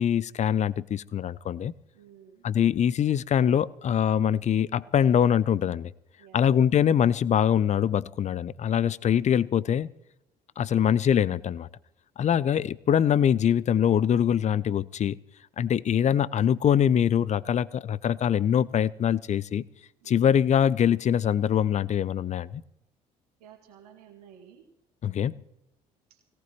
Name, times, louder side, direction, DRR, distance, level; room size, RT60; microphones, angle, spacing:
voice 1, 0.0-1.7 2.4-5.9 6.3-9.9 10.6-11.7 12.2-15.2 15.6-19.6 20.1-22.6 25.0-25.3, left 9 dB, 35° left, 0.5 m, -23 dB
voice 2, 1.9-2.5 5.1-5.4 6.2-6.5 10.7-10.9 12.4-12.5 20.0-20.4 23.4-24.7 26.1-26.2, right 8 dB, 80° right, 2.1 m, -53 dB
20.5 x 17.5 x 3.0 m
hypercardioid pair, 55°, 20 cm